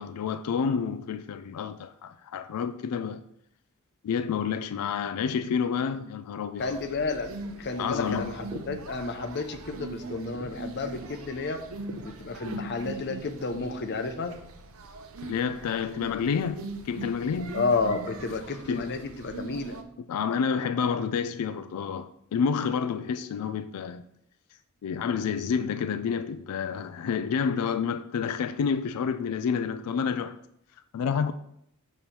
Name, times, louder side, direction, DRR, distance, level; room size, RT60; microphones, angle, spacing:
voice 1, 0.0-3.2 4.0-6.8 7.8-8.3 15.2-17.6 18.7-18.9 19.5-19.6 20.1-24.0 24.8-30.4 30.9-31.3, left 6 dB, 90° left, 0.3 m, -29 dB
voice 2, 6.6-7.3 7.6-11.6 12.0-14.3 17.5-19.8, left 3 dB, 50° left, 0.6 m, -31 dB
sound 1, 6.6-19.8, right 2 dB, 65° right, 0.6 m, -41 dB
6.8 x 3.0 x 5.5 m
head